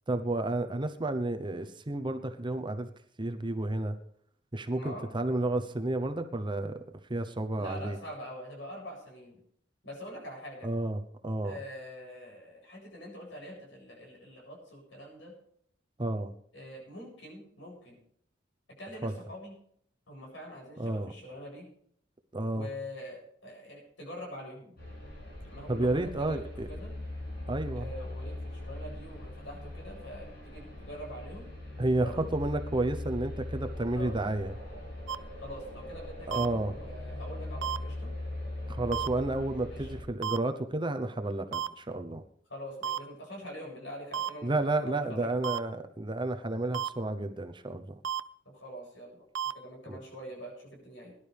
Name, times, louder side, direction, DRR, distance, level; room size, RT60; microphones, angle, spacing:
voice 1, 0.1-2.9 3.2-4.0 4.5-6.8 7.1-8.0 10.6-11.6 16.0-16.3 19.0-19.1 20.8-21.1 22.3-22.7 25.7-26.7 27.5-27.9 31.8-34.6 36.3-36.7 38.7-42.2 44.4-48.0 49.9-50.0, right 2 dB, 25° right, 8 dB, 0.9 m, -31 dB
voice 2, 4.7-5.1 7.6-9.4 9.8-10.7 11.4-15.3 16.5-18.0 18.8-19.5 20.1-21.7 22.5-24.8 25.5-26.9 27.7-31.5 31.9-32.3 33.9-34.2 35.4-38.1 39.7-39.9 42.5-45.5 48.4-51.1, equal, 70° left, -1 dB, 7.9 m, -44 dB
sound 1, 24.8-40.0, left 1 dB, 55° left, 7.0 m, -40 dB
sound 2, 35.1-35.2 36.3-36.5 37.6-37.8 38.9-39.1 40.2-40.4 41.5-41.7 42.8-43.0 44.1-44.3 45.4-45.6 46.7-46.9 48.0-48.2 49.3-49.5, right 9 dB, 85° right, 0.6 m, -31 dB
21.0 x 11.5 x 3.5 m, 0.65 s
head